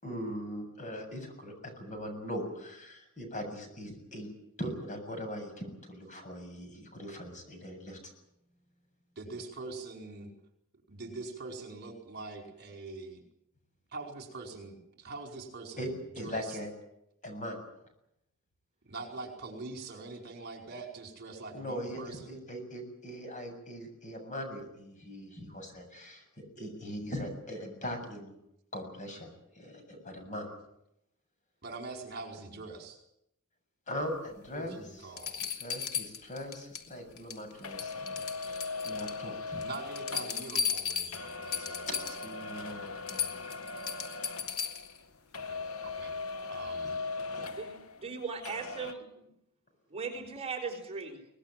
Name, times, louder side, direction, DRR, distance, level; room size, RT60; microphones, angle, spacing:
voice 1, 0.0-4.3 4.6-8.1 15.8-15.9 16.1-16.7 17.2-17.6 21.5-26.2 26.6-28.3 28.7-30.5 33.9-34.8 35.4-39.6 42.2-44.0 46.8-47.0 47.3-47.5, equal, 35° left, 6 dB, 7.3 m, -40 dB
voice 2, 9.1-10.3 10.9-13.2 13.9-16.6 18.8-22.3 31.6-33.0 34.6-35.3 39.6-42.1 45.3-46.1 46.4-47.0, right 3 dB, 50° right, 3 dB, 5.0 m, -44 dB
sound 1, 34.5-34.6 35.2-36.9 37.2-37.5 37.8-39.2 39.6-42.3 42.7-42.8 43.1-45.0 46.7-46.8, left 7 dB, 85° left, 3.0 m, -36 dB
sound 2, 37.6-45.1 45.3-48.2 48.4-48.9, left 3 dB, 70° left, 1.3 m, -39 dB
voice 3, 47.5-49.3 49.9-51.2, right 5 dB, 30° right, 3 dB, 4.6 m, -38 dB
23.5 x 20.0 x 9.2 m, 0.79 s
head